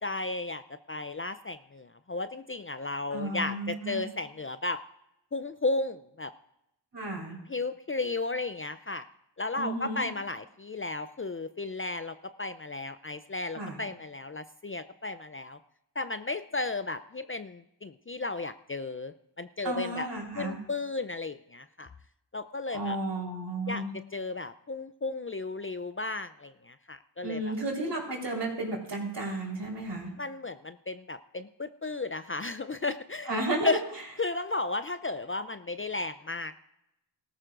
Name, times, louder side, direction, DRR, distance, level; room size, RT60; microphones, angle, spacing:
voice 1, 0.0-4.8 5.3-6.3 7.5-9.0 9.4-15.6 16.0-20.1 20.3-21.9 22.3-23.0 23.7-23.8 24.1-27.5 30.2-33.3 33.6-33.8 34.2-36.6, left 3 dB, 30° left, 11 dB, 0.4 m, -34 dB
voice 2, 3.1-4.1 6.9-7.4 9.6-10.1 13.5-13.8 19.6-20.6 22.7-23.9 27.2-30.1 33.3-33.8, right 2 dB, 65° right, -1 dB, 3.9 m, -33 dB
18.5 x 14.0 x 2.5 m, 0.84 s
wide cardioid pair, 55°, 46 cm